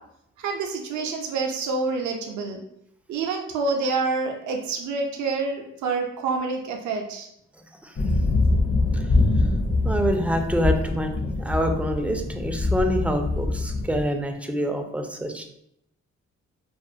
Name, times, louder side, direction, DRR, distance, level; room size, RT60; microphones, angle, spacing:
voice 1, 0.4-2.6 3.1-7.3, right 4 dB, 70° right, 2 dB, 0.4 m, -27 dB
sound 1, 8.0-14.0, left 2 dB, 50° left, 0.7 m, -24 dB
voice 2, 9.8-11.1 11.4-15.5, equal, 5° right, 4 dB, 0.3 m, -26 dB
2.4 x 2.3 x 2.6 m, 0.76 s
cardioid pair, 60°, 31 cm